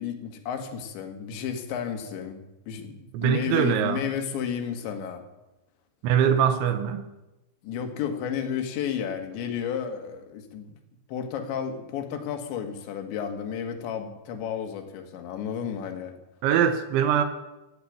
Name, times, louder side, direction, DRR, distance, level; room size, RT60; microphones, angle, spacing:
voice 1, 0.0-5.2 7.6-10.7 11.1-16.1, left 8 dB, 80° left, 5 dB, 3.9 m, -32 dB
voice 2, 3.1-4.0 6.0-7.0 16.4-17.2, right 8 dB, 85° right, 8 dB, 3.5 m, -22 dB
15.5 x 10.0 x 8.6 m, 0.99 s
omnidirectional pair, 5.2 m